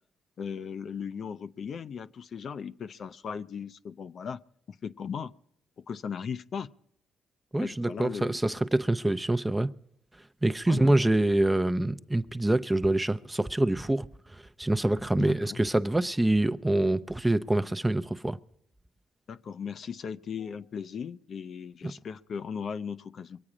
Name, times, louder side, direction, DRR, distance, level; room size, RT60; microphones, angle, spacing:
voice 1, 0.4-4.4 4.7-5.3 5.8-6.7 7.6-8.4 10.7-10.9 15.2-15.6 19.3-23.4, left 6 dB, 55° left, 0.5 m, -37 dB
voice 2, 7.5-9.7 10.4-14.1 14.3-18.4 21.8-21.9, right 1 dB, 10° right, 0.6 m, -26 dB
23.5 x 8.7 x 4.9 m
cardioid pair, 90°, 0 cm